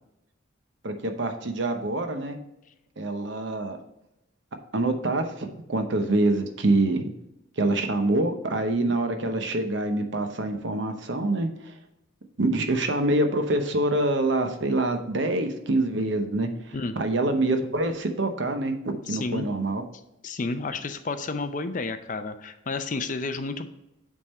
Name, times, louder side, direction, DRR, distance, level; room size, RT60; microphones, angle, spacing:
voice 1, 0.8-2.4 3.0-3.8 4.7-7.1 7.6-11.7 12.4-19.8, right 2 dB, 60° right, 6 dB, 0.8 m, -26 dB
voice 2, 19.1-19.5 20.2-23.7, left 3 dB, 40° left, 9 dB, 0.5 m, -31 dB
8.4 x 3.6 x 4.2 m, 0.87 s
head